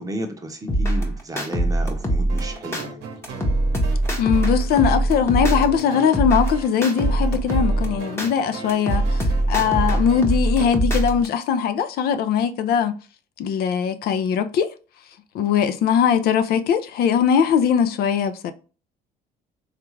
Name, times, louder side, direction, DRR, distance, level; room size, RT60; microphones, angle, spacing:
voice 1, 0.0-3.0, right 1 dB, 20° right, 0.7 m, -33 dB
sound 1, 0.7-2.8 3.2-5.8 6.1-8.3 8.7-11.3, right 1 dB, 15° left, 0.8 m, -22 dB
sound 2, 2.3-10.7, right 5 dB, 80° right, 0.8 m, -37 dB
voice 2, 4.2-13.0 13.4-14.7 15.3-18.5, left 7 dB, 65° left, 0.4 m, -20 dB
3.4 x 2.4 x 3.1 m
cardioid pair, 110°, 17 cm